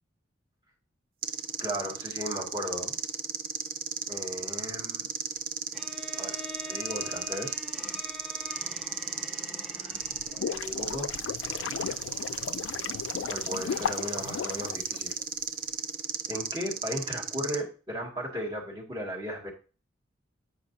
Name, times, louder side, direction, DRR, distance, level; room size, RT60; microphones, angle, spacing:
sound 1, 1.2-17.6, right 7 dB, 50° right, 0.5 m, -35 dB
voice 1, 1.6-3.0 4.1-5.1 6.2-6.4 6.7-7.5 9.7-10.1 10.3-11.1 13.3-15.1 16.3-19.5, equal, 25° right, -4 dB, 2.2 m, -36 dB
Bowed string instrument, 5.7-10.6, left 2 dB, ahead, 0.9 m, -44 dB
sound 2, 10.0-15.4, left 7 dB, 85° left, 0.3 m, -36 dB
8.3 x 5.1 x 2.8 m, 0.34 s
head